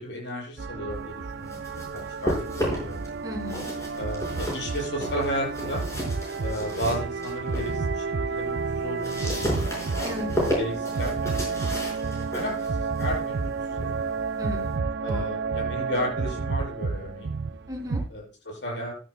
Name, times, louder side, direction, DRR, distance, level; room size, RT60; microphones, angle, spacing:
voice 1, 0.0-3.1 4.0-5.8 6.4-9.7 10.4-11.3 11.8-14.0 15.0-17.3 18.1-18.9, equal, 65° left, -2 dB, 6.9 m, -34 dB
sound 1, 0.6-18.1, right 4 dB, 60° right, 0.5 m, -30 dB
sound 2, 1.2-3.1 3.4-7.8 8.2-14.8, left 1 dB, 15° left, 5.3 m, -33 dB
voice 2, 3.2-3.7 10.0-10.3 14.4-15.3 17.7-18.0, left 1 dB, 20° right, -1 dB, 3.5 m, -35 dB
15.0 x 11.5 x 2.2 m, 0.36 s
head